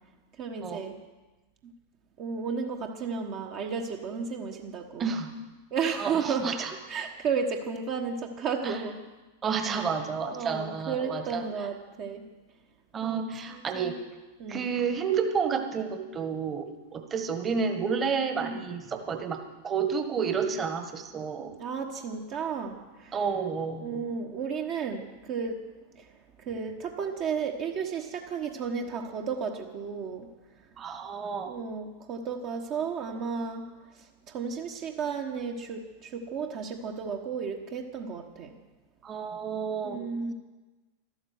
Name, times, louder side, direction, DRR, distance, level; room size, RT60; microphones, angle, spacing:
voice 1, 0.4-0.9 2.2-5.1 5.7-6.6 6.9-8.9 9.6-9.9 10.3-12.2 13.0-14.0 14.4-14.7 18.4-18.7 21.6-23.2 23.8-25.5 26.4-30.3 31.5-33.7 34.3-38.6 39.8-40.3, right 6 dB, 40° right, 2 dB, 1.3 m, -33 dB
voice 2, 6.0-6.7 8.6-8.8 9.4-11.4 12.9-13.9 14.5-19.4 19.6-21.5 23.1-24.0 30.8-31.5 39.0-40.0, right 6 dB, 25° right, 7 dB, 1.5 m, -30 dB
13.0 x 12.5 x 7.9 m, 1.2 s
figure-of-eight pair, 90°, 0 cm